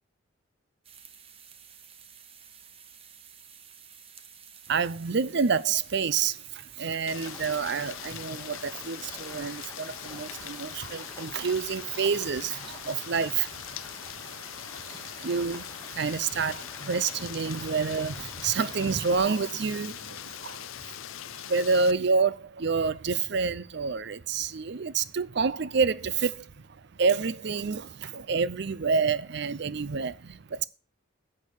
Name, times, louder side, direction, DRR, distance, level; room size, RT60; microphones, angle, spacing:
sound 1, 0.8-16.6, right 7 dB, 30° right, 0.9 m, -51 dB
voice 1, 4.7-13.9 14.7-30.7, right 5 dB, 55° right, 0.6 m, -28 dB
Rain, 7.1-21.9, left 11 dB, 85° left, 0.5 m, -42 dB
Stream, 7.2-19.2, left 2 dB, 15° left, 1.9 m, -48 dB
10.5 x 6.8 x 6.5 m
head